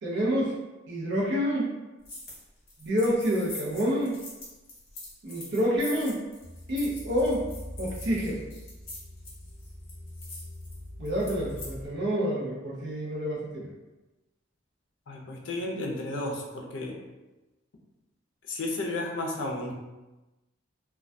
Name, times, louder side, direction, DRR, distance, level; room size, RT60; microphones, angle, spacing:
voice 1, 0.0-0.6 0.9-1.7 2.8-4.2 5.2-6.2 6.7-7.5 7.8-8.4 11.0-13.7, equal, 65° right, -4 dB, 0.6 m, -28 dB
sound 1, 2.0-2.4 2.7-11.7, left 2 dB, 50° left, 1.0 m, -44 dB
sound 2, 6.4-11.9, left 1 dB, 10° right, 1.0 m, -43 dB
voice 2, 15.1-17.0 18.5-19.7, left 2 dB, 70° left, 0 dB, 0.5 m, -33 dB
2.2 x 2.2 x 2.5 m, 1.1 s
head